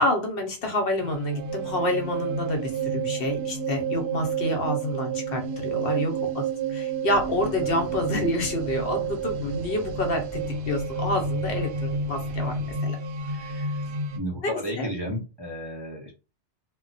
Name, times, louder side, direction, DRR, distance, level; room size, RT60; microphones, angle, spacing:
voice 1, 0.0-13.0 13.3-13.7 14.4-14.9, left 1 dB, 60° left, 4 dB, 0.8 m, -28 dB
sound 1, 1.0-14.2, right 5 dB, 75° right, 0.8 m, -30 dB
sound 2, 7.1-12.8, equal, 30° left, 0.4 m, -43 dB
voice 2, 14.2-16.1, equal, 30° right, -3 dB, 0.5 m, -32 dB
2.2 x 2.1 x 3.8 m, 0.30 s
omnidirectional pair, 1.2 m